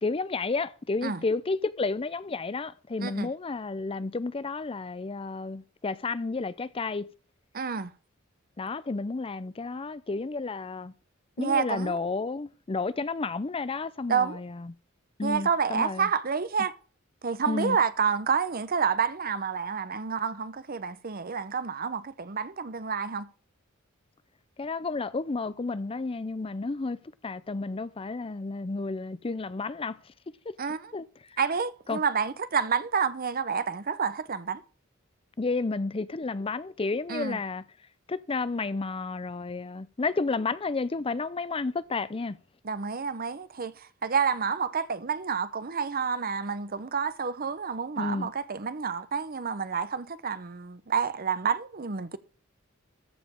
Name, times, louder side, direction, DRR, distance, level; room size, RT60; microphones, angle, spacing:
voice 1, 0.0-7.1 8.6-10.9 11.4-14.7 15.2-16.1 17.5-17.8 24.6-27.0 27.2-30.1 30.5-30.6 30.9-31.4 31.9-32.0 35.4-37.6 38.1-42.4 48.0-48.3, left 3 dB, 25° left, 0.5 m, -31 dB
voice 2, 7.5-7.9 11.4-12.0 14.1-14.4 15.2-16.7 17.2-23.3 30.6-30.9 31.4-34.6 37.1-37.4 42.6-52.2, right 6 dB, 45° right, 0.8 m, -29 dB
14.5 x 5.1 x 5.2 m
head